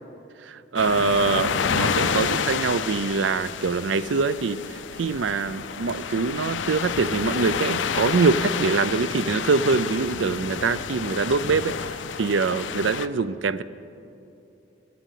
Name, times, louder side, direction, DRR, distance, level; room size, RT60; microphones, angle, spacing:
voice 1, 0.4-13.6, right 4 dB, 85° right, 16 dB, 0.5 m, -24 dB
sound 1, 0.8-13.1, left 6 dB, 85° left, 0.6 m, -29 dB
15.5 x 9.3 x 8.2 m, 2.8 s
head